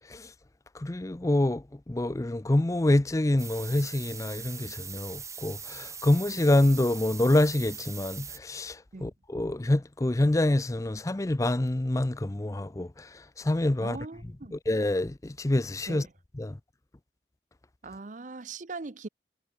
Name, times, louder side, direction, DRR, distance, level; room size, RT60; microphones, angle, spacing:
voice 1, 0.7-14.0 14.5-16.1 16.4-16.6, left 1 dB, 20° left, 0.5 m, -26 dB
sound 1, 3.4-8.4, right 6 dB, 20° right, 2.7 m, -41 dB
voice 2, 13.8-14.6 15.9-16.1 17.8-19.1, right 3 dB, 45° right, 0.7 m, -40 dB
head